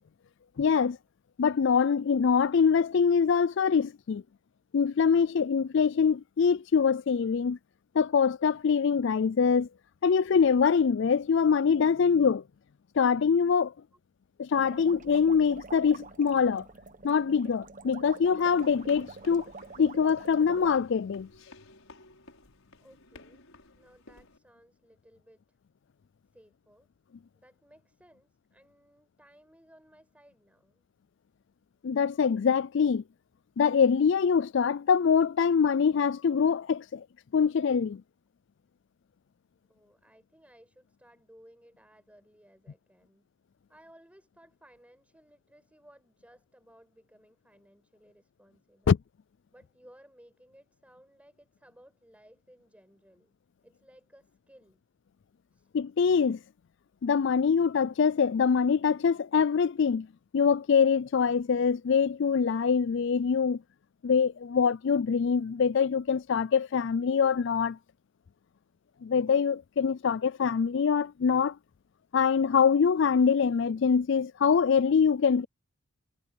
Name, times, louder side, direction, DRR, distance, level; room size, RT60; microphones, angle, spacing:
voice 1, 0.6-1.0 1.4-4.2 4.7-7.6 7.9-9.7 10.0-12.4 13.0-13.7 14.4-16.7 17.0-19.5 19.8-21.3 31.8-33.0 33.6-37.0 37.3-38.0 48.9-49.0 55.7-56.4 57.0-60.1 60.3-63.6 64.0-67.8 69.0-71.6 72.1-75.5, left 6 dB, 55° left, 0.4 m, -24 dB
sound 1, 14.5-20.7, right 3 dB, 35° right, 1.1 m, -46 dB
sound 2, 18.4-24.4, left 2 dB, 75° left, 6.3 m, -55 dB
voice 2, 22.8-23.4 23.7-25.6 26.3-26.9 27.3-30.8 39.7-43.3 43.7-49.0 49.5-53.4 53.6-54.8 55.5-55.7, equal, 5° right, 5.4 m, -59 dB
head